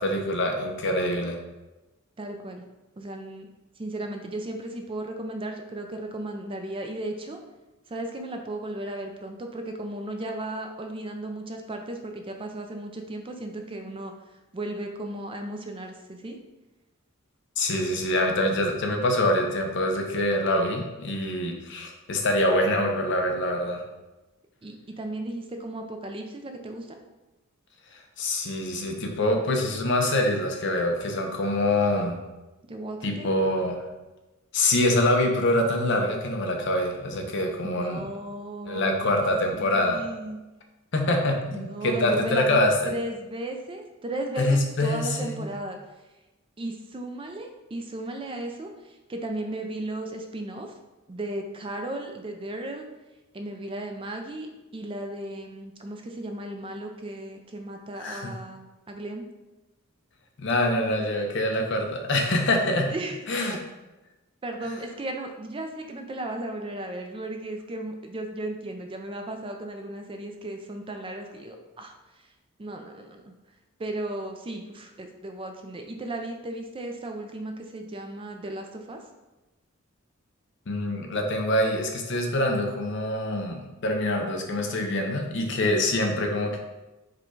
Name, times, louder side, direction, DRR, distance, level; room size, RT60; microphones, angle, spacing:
voice 1, 0.0-1.4 17.6-23.8 28.2-32.2 33.0-33.8 34.5-38.0 38.7-40.0 40.9-42.9 44.4-45.5 58.0-58.3 60.4-62.9 63.3-63.6 80.7-86.6, left 1 dB, 60° left, 2 dB, 0.6 m, -25 dB
voice 2, 2.2-2.6 3.0-3.5 3.8-7.4 7.9-14.1 14.5-16.4 24.6-27.0 32.7-33.3 37.6-40.4 41.5-45.8 46.6-50.7 51.1-52.9 53.3-59.3 62.9-63.3 64.4-72.3 72.6-73.3 73.8-79.0, right 1 dB, 25° right, 4 dB, 0.4 m, -35 dB
4.9 x 2.3 x 4.5 m, 1.1 s
head